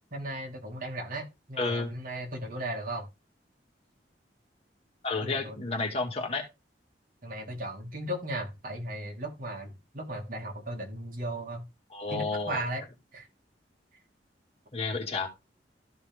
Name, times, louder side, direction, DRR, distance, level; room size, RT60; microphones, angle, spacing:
voice 1, 0.1-3.1 5.2-5.6 7.2-11.6 12.1-12.8 13.1-13.3, right 1 dB, 50° right, 2 dB, 2.5 m, -36 dB
voice 2, 1.6-1.9 5.0-6.4 11.9-12.7 14.7-15.3, left 3 dB, 35° left, 1 dB, 2.2 m, -31 dB
13.5 x 4.6 x 3.6 m, 0.24 s
head